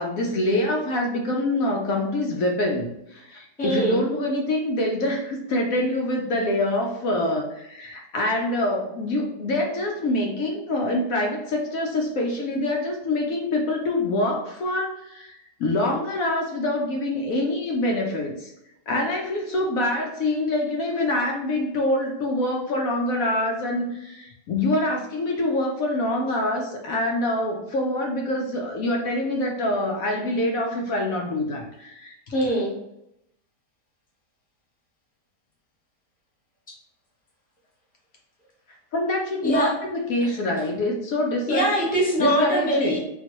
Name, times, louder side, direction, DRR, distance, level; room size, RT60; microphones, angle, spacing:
voice 1, 0.0-18.5 18.9-32.1 38.9-41.7 42.2-43.0, left 1 dB, 70° left, 1 dB, 1.0 m, -25 dB
voice 2, 3.6-4.0 32.3-32.7 39.4-39.7 40.2-40.4 41.5-43.0, right 1 dB, 5° left, -5 dB, 0.7 m, -23 dB
3.8 x 2.3 x 2.9 m, 0.83 s
omnidirectional pair, 1.6 m